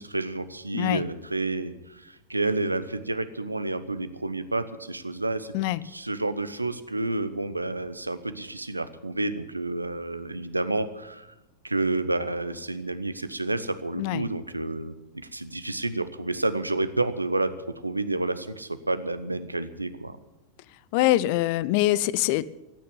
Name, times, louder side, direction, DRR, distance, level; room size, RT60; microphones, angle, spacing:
voice 1, 0.0-5.5 5.8-11.3 11.6-17.5 17.8-20.2, right 2 dB, 85° right, 12 dB, 0.9 m, -30 dB
voice 2, 20.9-22.5, left 16 dB, 45° left, 19 dB, 0.6 m, -23 dB
15.0 x 9.3 x 9.5 m, 1.0 s
figure-of-eight pair, 90°, 0 cm